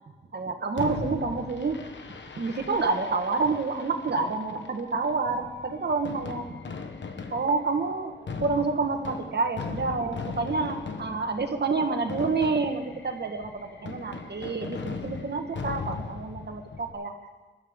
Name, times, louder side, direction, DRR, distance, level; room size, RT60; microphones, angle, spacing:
voice 1, 0.3-1.8 2.3-6.6 7.3-17.1, right 4 dB, 65° right, 5 dB, 1.7 m, -28 dB
Fireworks, 0.8-16.9, left 4 dB, 75° left, 1.3 m, -39 dB
21.0 x 12.5 x 3.8 m, 1.4 s
wide cardioid pair, 95°, 19 cm